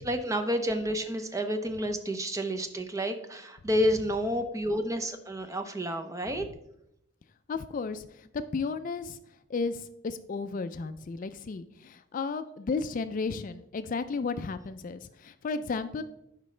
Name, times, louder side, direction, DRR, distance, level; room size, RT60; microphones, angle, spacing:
voice 1, 0.0-6.4, equal, 15° right, 7 dB, 0.6 m, -30 dB
voice 2, 7.5-9.2 9.5-16.0, left 4 dB, 40° left, 11 dB, 0.3 m, -33 dB
11.0 x 5.2 x 3.2 m, 0.81 s
head